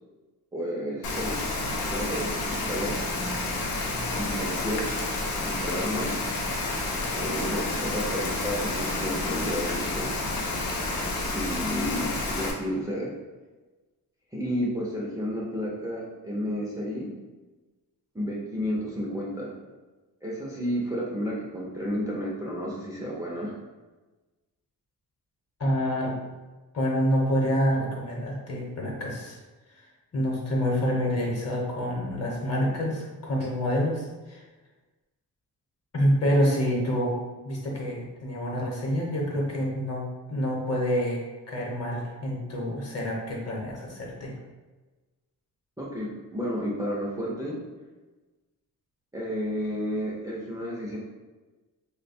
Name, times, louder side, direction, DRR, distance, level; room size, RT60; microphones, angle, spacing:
voice 1, 0.5-1.4 1.9-3.0 4.1-5.1 5.4-6.1 7.1-10.1 11.3-13.1 14.3-17.1 18.1-19.5 20.2-23.5 45.8-47.6 49.1-51.0, equal, 10° right, -6 dB, 0.5 m, -31 dB
Rain, 1.0-12.5, left 2 dB, 90° left, 0.7 m, -30 dB
voice 2, 25.6-26.1 26.7-29.4 29.7-34.4 35.9-37.2 37.4-40.0 40.3-41.2 41.5-44.3, equal, 45° left, -2 dB, 0.9 m, -27 dB
3.1 x 2.2 x 4.1 m, 1.2 s
wide cardioid pair, 150°, 35 cm